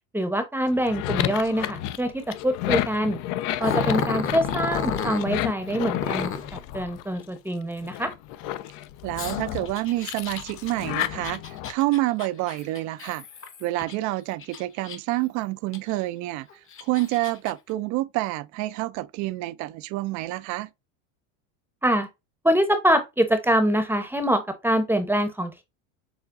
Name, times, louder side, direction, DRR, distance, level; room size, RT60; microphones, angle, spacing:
voice 1, 0.1-3.2 3.6-6.3 6.7-8.1 21.8-22.1 22.4-25.6, equal, 5° right, 0.8 m, -24 dB
sound 1, 0.7-7.4 7.8-11.7, left 13 dB, 50° left, 0.6 m, -31 dB
Growling, 3.6-5.3 5.9-6.5 9.2-13.9 14.4-15.2 15.7-15.8 16.5-17.5, left 6 dB, 30° left, 1.0 m, -31 dB
voice 2, 9.0-13.2 13.6-16.5 16.8-20.7, right 18 dB, 50° right, 0.5 m, -28 dB
6.9 x 2.3 x 2.5 m
supercardioid pair, 105°, 39 cm